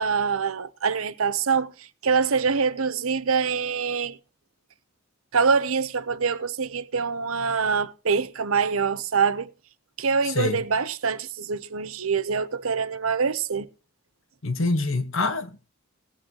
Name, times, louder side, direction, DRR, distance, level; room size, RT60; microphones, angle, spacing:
voice 1, 0.0-4.2 5.3-9.5 10.0-13.7, right 5 dB, 75° right, 0.8 m, -25 dB
voice 2, 10.2-10.6 14.4-15.7, left 3 dB, 65° left, 1.4 m, -26 dB
18.5 x 8.9 x 3.0 m
head